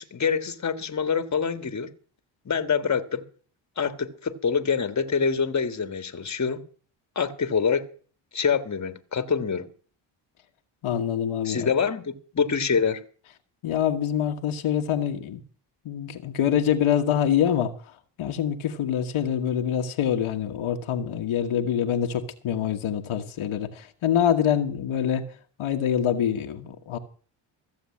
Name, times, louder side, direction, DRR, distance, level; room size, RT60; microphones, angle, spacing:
voice 1, 0.0-1.9 2.4-3.2 3.8-6.6 7.1-7.8 8.3-9.7 11.4-13.0, left 6 dB, 35° left, 1.6 m, -25 dB
voice 2, 10.8-11.7 13.6-15.4 15.8-17.7 18.2-25.2 25.6-27.0, left 9 dB, 80° left, 1.5 m, -25 dB
14.5 x 7.2 x 8.5 m
cardioid pair, 70°, 50 cm